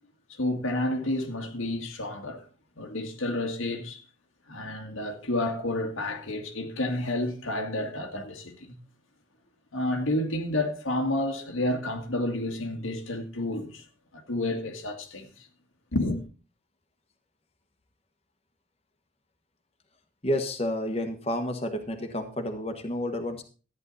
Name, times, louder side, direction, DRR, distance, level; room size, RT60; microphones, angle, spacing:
voice 1, 0.3-2.4 2.8-4.0 4.5-8.8 9.7-13.8 14.1-15.3 15.9-16.2, left 1 dB, 85° left, 2.0 m, -30 dB
voice 2, 20.2-23.4, left 1 dB, 30° left, 1.4 m, -30 dB
13.5 x 9.6 x 4.2 m
head